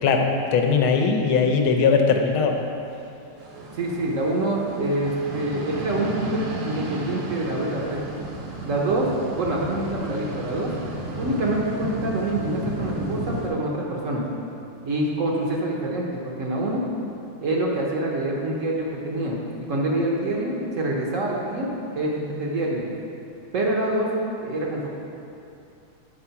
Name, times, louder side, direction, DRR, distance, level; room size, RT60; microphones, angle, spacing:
voice 1, 0.0-2.6, left 5 dB, 75° left, 3 dB, 1.6 m, -20 dB
sound 1, 3.4-13.5, right 1 dB, 85° right, 2.0 m, -33 dB
voice 2, 3.8-8.0 8.6-9.1 9.3-10.7 11.2-14.2 14.9-16.8 17.4-19.4 19.7-21.7 21.9-22.9 23.5-24.1 24.4-24.9, right 1 dB, 55° right, -2 dB, 0.8 m, -26 dB
8.2 x 4.8 x 5.7 m, 2.7 s
omnidirectional pair, 2.4 m